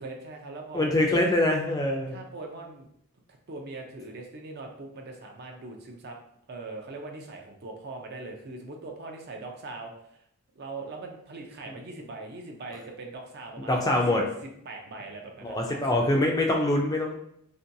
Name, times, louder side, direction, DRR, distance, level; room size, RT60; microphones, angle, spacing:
voice 1, 0.0-1.2 2.1-2.9 3.5-6.2 6.5-10.2 10.6-14.0 14.7-16.1, right 2 dB, 50° right, 2 dB, 0.4 m, -41 dB
voice 2, 0.7-2.2 13.7-14.2 15.4-17.1, left 1 dB, 15° left, 1 dB, 0.3 m, -24 dB
2.5 x 2.2 x 2.6 m, 0.71 s
head